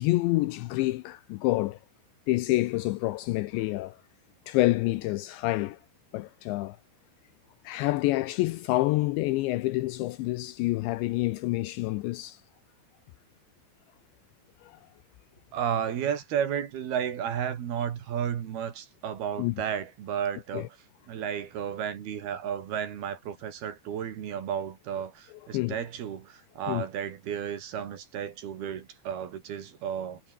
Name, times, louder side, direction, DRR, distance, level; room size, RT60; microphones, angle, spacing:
voice 1, 0.0-1.8 2.3-4.0 4.5-5.8 6.1-6.8 7.6-12.4 14.6-14.8 19.4-19.5 20.5-20.7 25.5-25.8 26.7-26.8, left 19 dB, 85° left, 2.7 m, -27 dB
voice 2, 15.5-20.8 21.1-30.2, right 8 dB, 55° right, 3.7 m, -33 dB
omnidirectional pair, 5.8 m